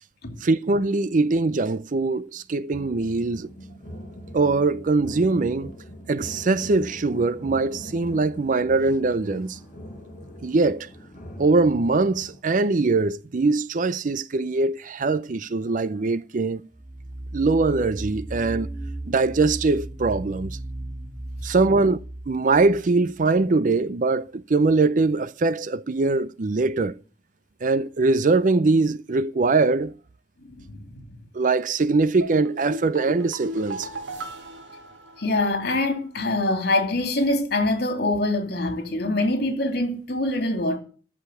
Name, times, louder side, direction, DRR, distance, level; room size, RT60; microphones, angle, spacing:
voice 1, 0.4-3.5 4.3-5.7 6.1-9.6 10.4-10.9 11.4-16.7 17.3-18.7 19.1-20.6 21.4-22.0 22.3-27.0 27.6-29.9 31.3-33.9, right 3 dB, 45° right, 0.5 m, -22 dB
sound 1, 2.7-12.4, equal, 40° left, 4.9 m, -42 dB
sound 2, 16.7-23.4, right 1 dB, 5° right, 0.7 m, -36 dB
voice 2, 30.5-31.0 35.2-40.8, left 2 dB, 60° left, 2.7 m, -24 dB
sound 3, 32.2-35.6 35.9-36.0, right 1 dB, 85° right, 2.3 m, -35 dB
14.0 x 5.0 x 8.9 m
head